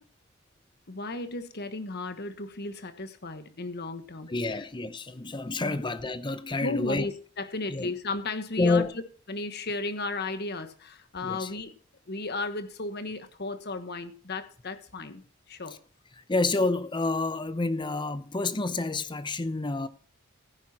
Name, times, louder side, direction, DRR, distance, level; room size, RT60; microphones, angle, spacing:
voice 1, 0.9-4.3 5.6-5.8 6.6-8.9 9.3-11.7 12.1-15.2 15.5-15.7, left 3 dB, 50° left, 1.3 m, -34 dB
voice 2, 4.3-7.1 7.7-7.9 8.6-8.9 11.2-11.5 16.1-19.9, left 3 dB, 20° left, 0.7 m, -28 dB
16.0 x 10.0 x 2.9 m
head